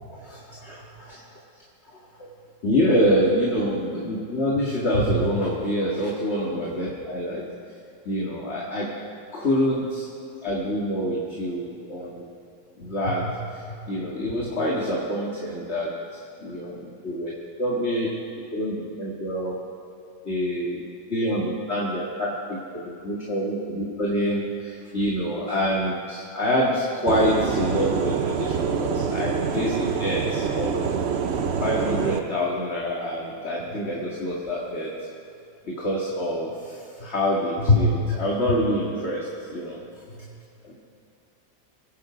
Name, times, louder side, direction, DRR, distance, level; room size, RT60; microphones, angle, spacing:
voice 1, 0.1-1.2 2.2-2.3 2.6-7.5 8.1-8.9 9.3-10.1 10.4-12.3 12.8-15.9 16.4-17.3 17.6-18.1 18.5-19.6 20.2-20.8 21.1-30.8 31.6-34.9 35.7-39.8 40.2-40.3 40.6-40.7, equal, 35° left, -5 dB, 2.0 m, -26 dB
sound 1, 27.1-32.2, right 6 dB, 60° right, 0.7 m, -26 dB
23.5 x 8.8 x 5.0 m, 2.7 s
omnidirectional pair, 2.1 m